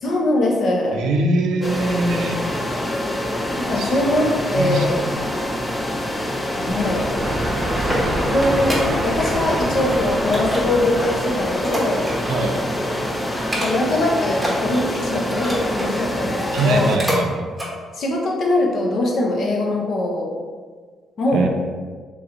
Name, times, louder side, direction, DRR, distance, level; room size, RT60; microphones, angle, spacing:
voice 1, 0.0-1.0 3.6-5.0 6.6-7.0 8.3-8.8 9.0-12.1 13.5-16.9 17.9-20.4 21.2-21.5, left 1 dB, 60° left, -1 dB, 0.8 m, -22 dB
voice 2, 0.9-2.4 3.8-3.9 4.5-5.1 12.3-12.6 16.5-17.5 21.3-21.5, right 2 dB, 85° right, 3 dB, 0.5 m, -22 dB
sound 1, 1.6-17.0, left 1 dB, 15° left, 0.5 m, -26 dB
sound 2, 6.7-12.3, right 1 dB, 25° right, 0.9 m, -27 dB
sound 3, 7.8-9.3 9.6-10.0 10.3-12.5 12.8-13.0 13.4-14.0 14.3-15.9 16.4-17.2 17.5-17.7 18.2-18.3, equal, 5° right, 1.1 m, -28 dB
3.1 x 3.0 x 3.8 m, 1.5 s
cardioid pair, 90°, 0 cm